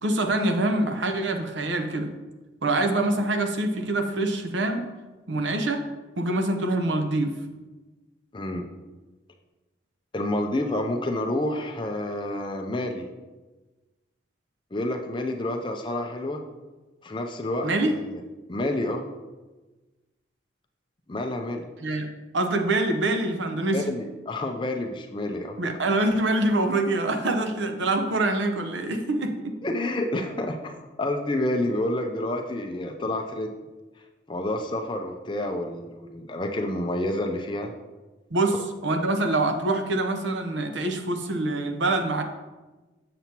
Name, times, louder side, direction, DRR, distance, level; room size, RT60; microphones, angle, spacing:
voice 1, 0.0-2.1 2.6-4.9 5.3-5.8 6.2-7.4 17.6-17.9 21.8-22.1 22.3-23.8 25.6-29.6 38.3-38.6 38.8-42.2, right 2 dB, 75° right, 5 dB, 0.8 m, -25 dB
voice 2, 8.3-8.6 10.1-13.1 14.7-16.4 17.0-18.0 18.5-19.1 21.1-21.7 23.7-25.6 29.6-33.5 34.3-37.7, left 1 dB, 25° left, 3 dB, 0.5 m, -29 dB
7.5 x 6.9 x 2.9 m, 1.2 s
head